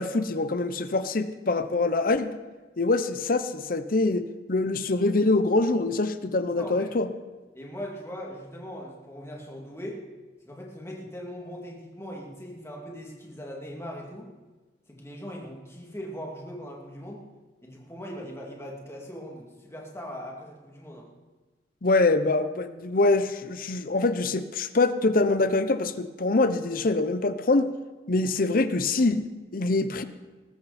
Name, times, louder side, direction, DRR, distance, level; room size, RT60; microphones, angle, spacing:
voice 1, 0.0-2.3 2.8-7.1 21.8-27.7 28.1-29.3 29.5-30.0, left 2 dB, 55° left, 11 dB, 0.8 m, -24 dB
voice 2, 6.6-6.9 7.5-10.1 10.4-14.3 14.9-17.2 17.6-21.1, equal, 15° left, -1 dB, 2.6 m, -40 dB
19.5 x 14.0 x 4.3 m, 1.2 s
head